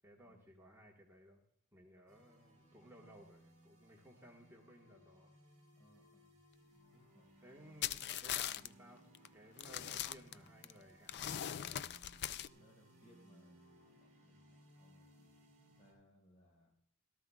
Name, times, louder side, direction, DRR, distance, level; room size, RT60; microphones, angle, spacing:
voice 1, 0.0-1.4 1.7-5.3 7.4-11.8, equal, 10° right, -2 dB, 1.4 m, -60 dB
sound 1, 2.1-15.9, right 1 dB, 35° right, 5.1 m, -64 dB
voice 2, 5.7-6.4 6.9-7.3 12.5-16.7, equal, 30° left, -1 dB, 5.1 m, -68 dB
sound 2, 7.8-8.7 9.1-9.3 9.6-10.7 11.1-12.5, left 11 dB, 50° left, 0.4 m, -40 dB
17.5 x 13.5 x 2.3 m, 0.67 s
head